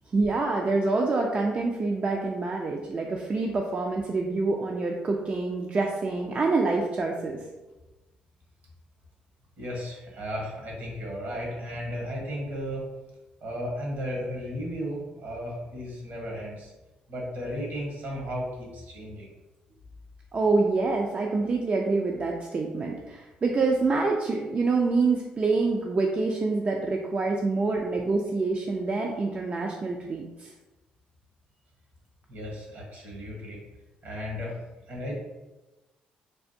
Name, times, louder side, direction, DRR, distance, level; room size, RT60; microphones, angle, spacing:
voice 1, 0.1-7.4 20.3-30.5, right 3 dB, 40° right, 0 dB, 0.4 m, -26 dB
voice 2, 9.6-12.8 13.4-16.7 17.1-19.3 32.3-33.6 34.0-34.6 34.9-35.2, equal, 65° right, -3 dB, 1.3 m, -34 dB
3.3 x 2.4 x 2.7 m, 1.1 s
supercardioid pair, 60°, 4 cm